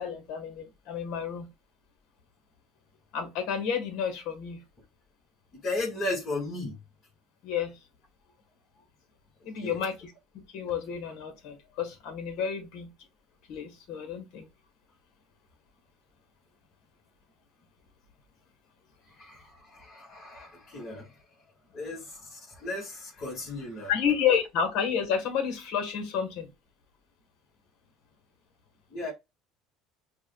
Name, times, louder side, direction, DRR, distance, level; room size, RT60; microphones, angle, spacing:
voice 1, 0.0-1.5 3.1-4.6 7.4-7.8 9.4-12.9 13.5-14.5 23.9-26.5, left 7 dB, 70° left, 1.3 m, -30 dB
voice 2, 5.5-6.8 9.6-9.8 19.1-21.2 21.7-23.9 28.9-29.1, left 2 dB, 40° left, 1.8 m, -35 dB
4.7 x 2.4 x 2.3 m
supercardioid pair, 80°, 0 cm